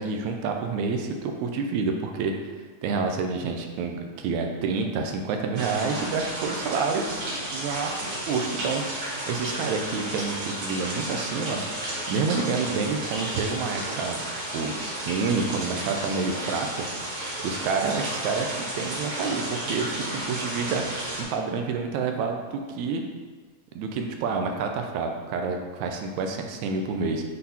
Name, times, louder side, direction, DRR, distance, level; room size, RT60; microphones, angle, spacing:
voice 1, 0.0-2.3 2.8-11.6 12.1-14.2 14.5-16.7 17.4-18.5 18.8-20.8 21.3-23.0 23.7-27.2, right 4 dB, 75° right, 3 dB, 1.8 m, -28 dB
sound 1, 5.6-21.2, right 1 dB, 50° right, 2.3 m, -33 dB
7.5 x 4.1 x 4.2 m, 1.4 s
omnidirectional pair, 3.7 m